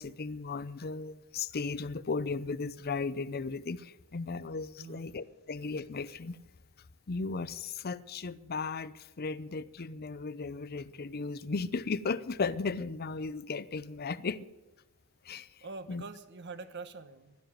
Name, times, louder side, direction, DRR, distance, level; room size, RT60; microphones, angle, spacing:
voice 1, 0.0-6.4 7.1-14.4 15.3-15.5 15.9-16.0, left 4 dB, 50° left, 0.6 m, -36 dB
voice 2, 15.6-17.4, right 3 dB, 55° right, 1.1 m, -44 dB
12.0 x 12.0 x 7.7 m
head